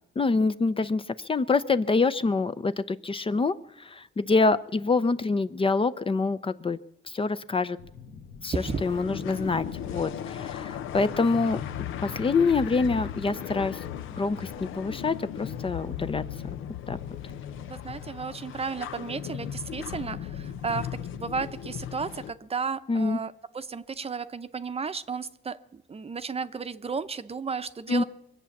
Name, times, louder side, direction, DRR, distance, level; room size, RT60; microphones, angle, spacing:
voice 1, 0.2-6.8 7.1-7.8 8.4-8.5 8.8-11.6 12.0-13.8 14.2-16.6 16.9-17.0 22.9-23.2 27.9-28.0, left 4 dB, 25° left, 13 dB, 0.6 m, -26 dB
sound 1, 7.8-18.1, left 6 dB, 65° left, 1.3 m, -48 dB
voice 2, 8.5-8.8 17.6-20.9 21.1-28.0, right 5 dB, 30° right, 12 dB, 0.7 m, -33 dB
sound 2, 8.6-22.3, left 10 dB, 85° left, 0.8 m, -37 dB
23.0 x 8.3 x 7.2 m, 0.83 s
cardioid pair, 90°, 20 cm